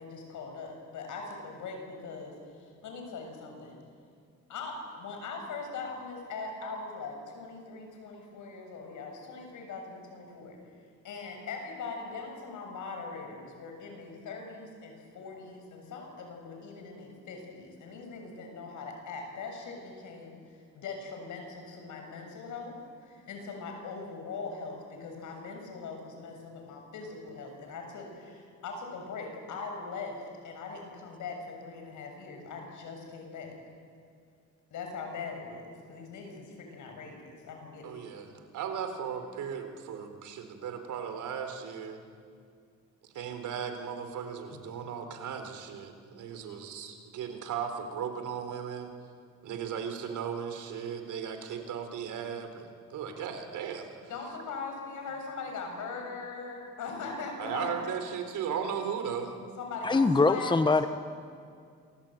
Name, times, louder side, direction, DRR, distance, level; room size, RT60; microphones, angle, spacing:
voice 1, 0.0-3.8 4.5-10.6 11.0-22.8 23.0-33.5 34.7-38.0 44.5-44.6 54.1-57.8 59.6-60.6, left 4 dB, 80° left, 3 dB, 7.3 m, -41 dB
voice 2, 37.8-38.3 38.5-42.0 43.1-48.9 49.4-53.9 57.4-59.3, right 7 dB, 80° right, 6 dB, 3.9 m, -36 dB
voice 3, 59.8-60.9, left 3 dB, 15° left, 10 dB, 1.1 m, -23 dB
28.0 x 21.0 x 9.2 m, 2.3 s
cardioid pair, 90°, 30 cm